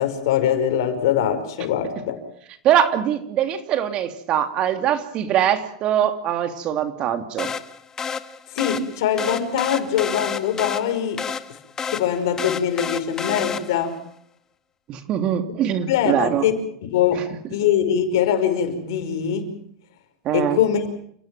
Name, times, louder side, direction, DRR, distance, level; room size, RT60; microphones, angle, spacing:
voice 1, 0.0-2.2 8.5-11.3 11.9-14.0 15.9-19.5 20.3-20.8, left 9 dB, 75° left, 7 dB, 5.4 m, -22 dB
voice 2, 2.6-7.5 14.9-16.5 17.1-17.2 20.2-20.6, right 10 dB, 45° right, 8 dB, 3.0 m, -22 dB
sound 1, 7.4-14.0, left 6 dB, 25° left, 1.7 m, -30 dB
30.0 x 17.0 x 7.7 m, 0.67 s
hypercardioid pair, 105°, 2 cm